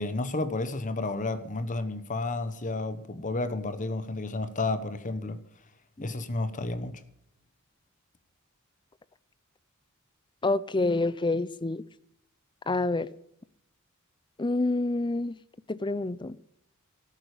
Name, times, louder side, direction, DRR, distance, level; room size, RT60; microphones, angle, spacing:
voice 1, 0.0-5.4 6.0-7.0, left 2 dB, 35° left, 1.2 m, -31 dB
voice 2, 10.4-11.8 12.7-13.1 14.4-15.4 15.7-16.4, left 2 dB, 20° left, 0.6 m, -27 dB
13.5 x 11.0 x 8.3 m
head